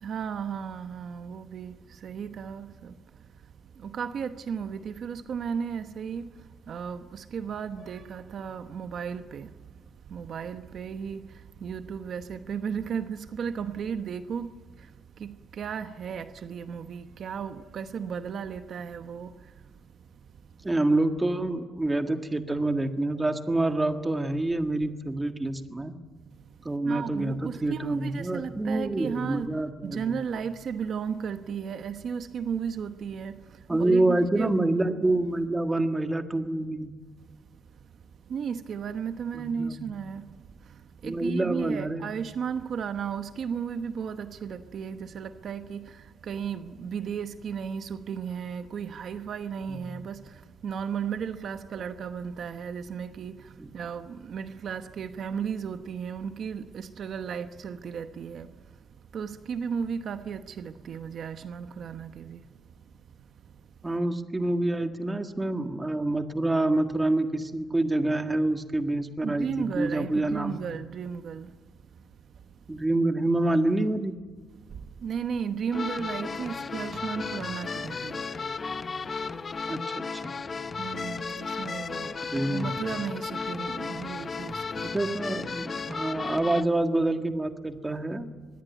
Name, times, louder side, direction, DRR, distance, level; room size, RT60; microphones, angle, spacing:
voice 1, 0.0-2.9 3.8-9.5 10.1-14.9 15.2-19.5 26.8-29.5 29.8-34.5 38.3-40.3 40.7-58.5 59.1-62.4 69.2-71.5 74.7-78.2 80.8-84.9, right 7 dB, 55° right, 1.0 m, -35 dB
voice 2, 20.6-26.0 26.6-30.2 33.7-36.9 39.3-39.9 41.0-42.0 49.7-49.9 53.6-53.7 63.8-70.6 72.7-74.2 79.7-80.5 82.3-82.8 84.8-88.3, right 2 dB, 15° right, 1.7 m, -27 dB
sound 1, 75.7-86.6, left 4 dB, 30° left, 0.9 m, -34 dB
24.0 x 21.0 x 9.2 m
cardioid pair, 145°, 0 cm